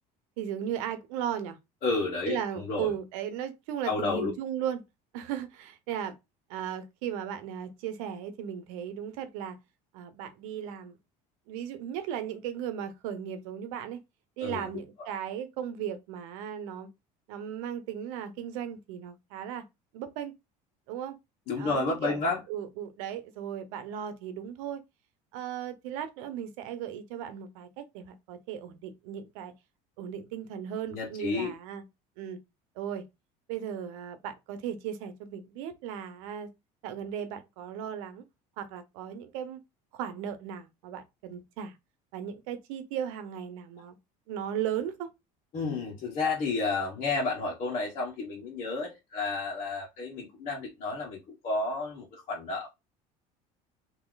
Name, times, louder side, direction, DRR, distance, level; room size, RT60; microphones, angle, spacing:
voice 1, 0.4-1.6 2.3-4.8 5.1-6.1 6.5-9.6 9.9-11.0 11.5-14.0 14.4-16.9 17.3-19.6 19.9-20.3 20.9-21.1 21.6-22.2 22.5-24.8 25.3-29.5 30.0-31.8 32.2-32.4 32.8-33.0 33.5-36.5 36.8-38.2 38.6-39.6 39.9-41.8 42.1-43.9 44.3-45.1, right 9 dB, 90° right, 0.9 m, -36 dB
voice 2, 1.8-2.9 3.8-4.3 14.4-14.7 21.5-22.4 30.9-31.5 45.5-52.7, left 3 dB, 45° left, 1.4 m, -31 dB
3.0 x 2.9 x 4.0 m
cardioid pair, 125°, 17 cm